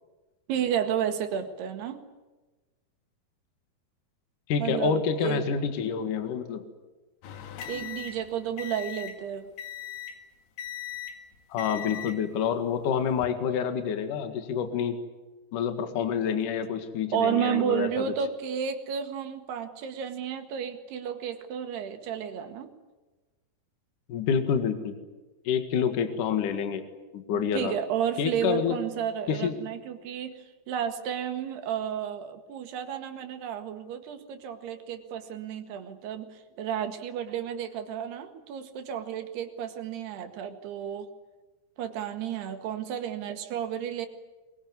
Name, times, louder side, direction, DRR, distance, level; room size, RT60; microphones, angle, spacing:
voice 1, 0.5-2.0 4.6-5.4 7.7-9.5 17.1-22.7 27.3-30.3 30.7-36.3 36.6-41.1 41.8-44.1, right 8 dB, 80° right, 7 dB, 3.9 m, -32 dB
voice 2, 4.5-6.6 11.5-15.0 15.5-18.1 24.1-24.9 25.4-26.8 27.1-27.7 28.2-28.8 29.3-29.6, left 7 dB, 60° left, 8 dB, 3.1 m, -28 dB
sound 1, 7.2-9.2 9.6-10.2 10.6-11.2 11.6-12.2 13.0-13.3, left 10 dB, 80° left, 3.9 m, -39 dB
23.0 x 22.5 x 9.6 m, 1.2 s
omnidirectional pair, 4.6 m